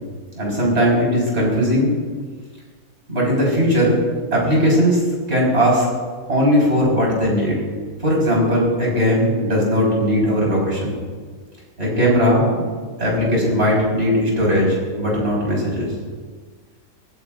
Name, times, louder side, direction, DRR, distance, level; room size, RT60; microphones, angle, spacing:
voice 1, 0.4-1.9 3.1-4.0 4.3-5.0 5.3-5.9 6.3-7.6 8.0-11.0 11.8-12.6 13.0-15.9, equal, 40° right, -4 dB, 5.6 m, -18 dB
24.5 x 16.0 x 2.6 m, 1.5 s
omnidirectional pair, 1.6 m